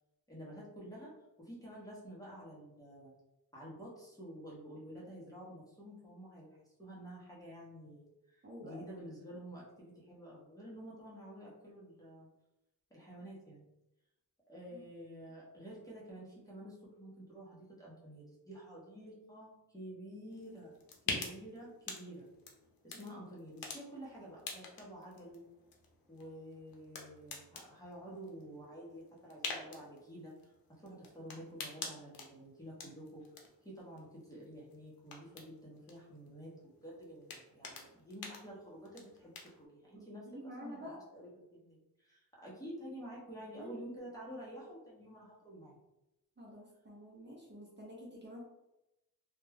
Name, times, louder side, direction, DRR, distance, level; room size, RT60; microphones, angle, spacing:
voice 1, 0.3-1.1 1.4-3.1 3.5-12.3 12.9-13.7 14.5-20.7 21.1-22.3 22.8-25.5 26.1-33.2 33.6-45.8, equal, 10° left, -6 dB, 0.7 m, -50 dB
voice 2, 8.4-8.9 14.7-14.8 23.0-23.1 40.0-41.0 43.6-43.8 46.4-48.4, equal, 30° right, -4 dB, 0.6 m, -49 dB
sound 1, 20.3-39.6, left 4 dB, 70° left, 0.6 m, -48 dB
2.3 x 2.1 x 3.2 m, 0.91 s
wide cardioid pair, 135°, 36 cm